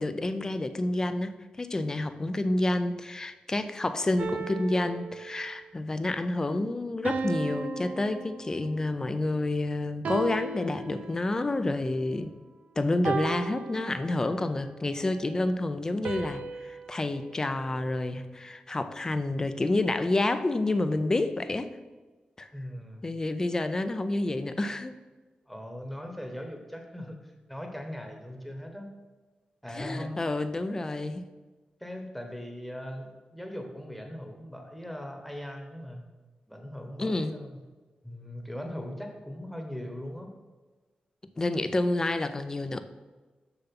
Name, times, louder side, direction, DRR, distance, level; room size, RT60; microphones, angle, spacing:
voice 1, 0.0-1.3 1.6-12.4 12.8-21.7 22.4-22.5 23.0-24.9 29.7-31.2 37.0-37.4 41.4-42.8, left 2 dB, 20° left, 11 dB, 0.5 m, -29 dB
sound 1, 4.2-5.7 7.0-8.9 10.0-11.5 13.0-14.5 16.0-18.3, right 4 dB, 60° right, 0.7 m, -36 dB
voice 2, 22.5-23.0 25.5-28.9 29.6-30.2 31.8-36.1 36.5-37.6 38.0-40.3, equal, ahead, 3 dB, 1.1 m, -39 dB
6.9 x 6.8 x 5.9 m, 1.3 s
wide cardioid pair, 175°, 3 cm